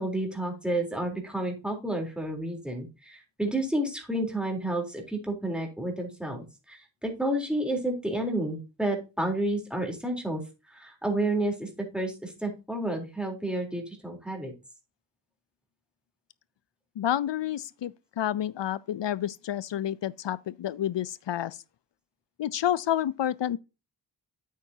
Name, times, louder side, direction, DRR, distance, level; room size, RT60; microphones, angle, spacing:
voice 1, 0.0-6.4 6.7-10.4 10.7-14.5, right 1 dB, ahead, 3.6 m, -30 dB
voice 2, 17.0-21.6 22.4-23.6, left 11 dB, 70° left, 0.6 m, -29 dB
8.9 x 8.4 x 2.8 m
cardioid pair, 60°, 45 cm